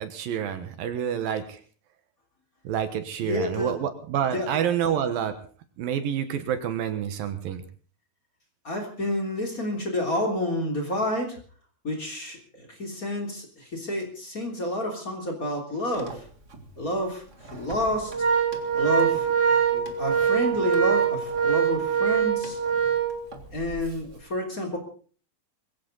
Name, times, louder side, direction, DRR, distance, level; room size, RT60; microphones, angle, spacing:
voice 1, 0.0-1.6 2.6-5.3 5.8-7.6, right 9 dB, 75° right, 9 dB, 3.0 m, -28 dB
voice 2, 3.2-3.7 4.3-4.5 8.6-11.4 11.8-16.3 16.8-17.2 17.5-18.1 18.7-19.3 19.7-22.6 23.5-24.8, left 1 dB, 25° left, 2 dB, 3.4 m, -29 dB
Organ, 15.9-16.1 16.5-16.6 17.5-23.8, right 7 dB, 30° right, 1.3 m, -24 dB
21.0 x 16.5 x 4.0 m, 0.42 s
omnidirectional pair, 4.3 m